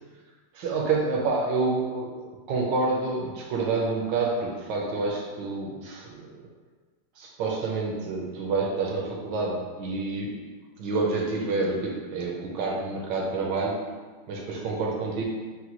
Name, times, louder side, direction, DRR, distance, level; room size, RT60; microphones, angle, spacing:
voice 1, 0.6-2.2 2.5-6.4 7.2-10.4 10.8-13.9 14.3-15.2, right 3 dB, 70° right, -2 dB, 1.2 m, -28 dB
6.5 x 2.2 x 2.9 m, 1.4 s
omnidirectional pair, 2.4 m